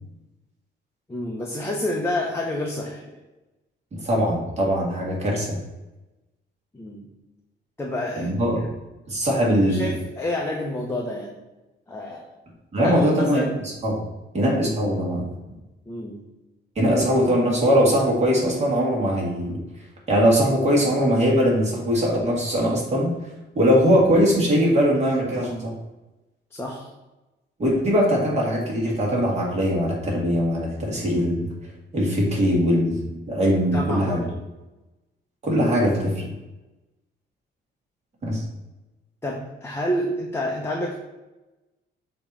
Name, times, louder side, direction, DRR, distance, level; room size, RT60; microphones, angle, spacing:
voice 1, 1.1-3.2 6.7-7.1 7.8-8.6 9.6-11.4 11.9-12.3 12.8-13.5 15.9-16.3 26.5-26.9 33.7-34.4 39.2-41.0, left 1 dB, 10° left, -1 dB, 0.7 m, -29 dB
voice 2, 4.0-5.6 8.2-8.6 9.1-9.9 12.7-13.5 13.8-13.9 14.3-15.2 16.8-19.6 20.1-23.1 23.5-25.7 27.6-31.5 31.9-33.0 33.3-34.2 35.4-36.3 38.2-38.4, equal, 35° right, -3 dB, 2.1 m, -21 dB
6.9 x 3.0 x 5.5 m, 1.1 s
cardioid pair, 160°, 20 cm